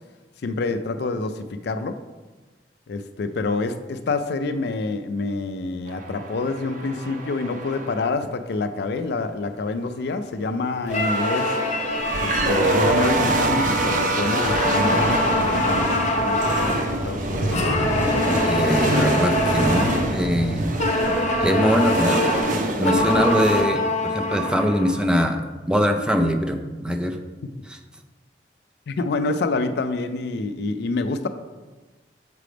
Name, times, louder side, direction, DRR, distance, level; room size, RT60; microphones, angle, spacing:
voice 1, 0.4-2.0 2.9-11.5 12.2-15.9 16.2-17.7 28.9-31.3, left 3 dB, 65° left, 10 dB, 0.4 m, -27 dB
sound 1, 5.9-8.2 10.8-23.6, right 2 dB, 45° right, 0.7 m, -25 dB
sound 2, 10.9-14.0 14.4-17.0 17.5-20.1 20.8-25.0, left 1 dB, 40° left, 0.8 m, -24 dB
voice 2, 18.4-20.7 21.4-25.4 25.7-27.2, equal, 5° right, 4 dB, 0.4 m, -22 dB
6.7 x 3.3 x 5.0 m, 1.2 s
head